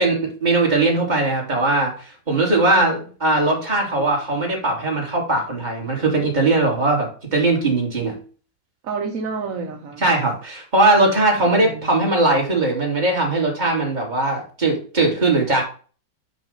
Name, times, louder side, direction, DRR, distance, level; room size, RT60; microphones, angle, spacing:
voice 1, 0.0-8.2 10.0-15.6, right 2 dB, 25° right, 2.5 m, -20 dB
voice 2, 2.7-3.0 8.8-10.0 11.5-12.0, right 4 dB, 55° right, 1.2 m, -29 dB
5.4 x 5.4 x 5.5 m
omnidirectional pair, 2.0 m